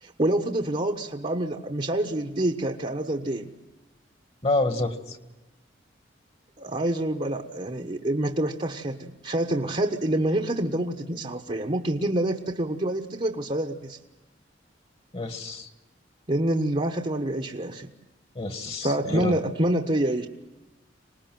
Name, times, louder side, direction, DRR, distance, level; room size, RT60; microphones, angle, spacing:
voice 1, 0.0-3.5 6.6-14.0 16.3-17.9 18.8-20.3, right 1 dB, 35° right, 4 dB, 1.2 m, -27 dB
voice 2, 4.4-5.2 15.1-15.7 18.4-19.4, left 2 dB, 35° left, 8 dB, 1.7 m, -28 dB
26.0 x 20.0 x 7.6 m, 1.0 s
head